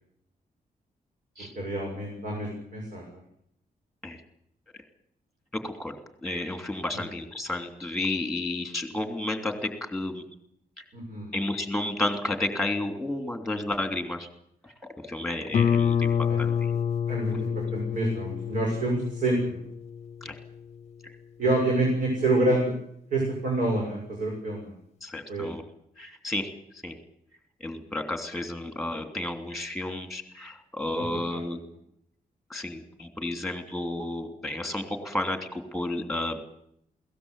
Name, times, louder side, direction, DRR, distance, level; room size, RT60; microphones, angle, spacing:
voice 1, 1.6-3.0 6.9-7.0 10.9-11.3 16.3-16.4 17.1-19.6 21.4-22.7 23.1-24.7 25.3-25.5 31.0-31.1 31.3-31.4, right 2 dB, 60° right, -1 dB, 7.0 m, -27 dB
voice 2, 5.5-5.9 6.2-10.2 10.8-10.9 11.3-14.3 14.6-16.1 16.4-16.8 17.3-17.4 20.2-20.4 21.0-21.1 25.0-25.6 26.0-26.5 26.8-26.9 27.6-31.6 32.5-36.4, left 2 dB, ahead, 6 dB, 3.0 m, -32 dB
Guitar, 15.5-20.9, left 7 dB, 45° left, 0.8 m, -28 dB
22.0 x 17.5 x 8.3 m, 0.71 s
wide cardioid pair, 175°, 15 cm